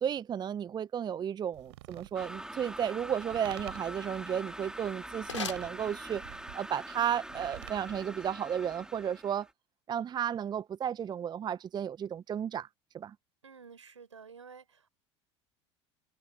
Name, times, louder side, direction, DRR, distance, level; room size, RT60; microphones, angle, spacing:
voice 1, 0.0-6.2 6.5-9.5 9.9-12.7 12.9-13.1, right 9 dB, 30° right, 0.7 m, -33 dB
sound 1, 1.5-8.3, right 18 dB, 65° right, 3.8 m, -51 dB
sound 2, 2.1-9.5, right 1 dB, 5° right, 2.9 m, -44 dB
sound 3, 5.1-6.5, left 6 dB, 80° left, 4.0 m, -43 dB
voice 2, 13.4-14.9, right 6 dB, 80° right, 4.8 m, -51 dB
figure-of-eight pair, 70°, 15 cm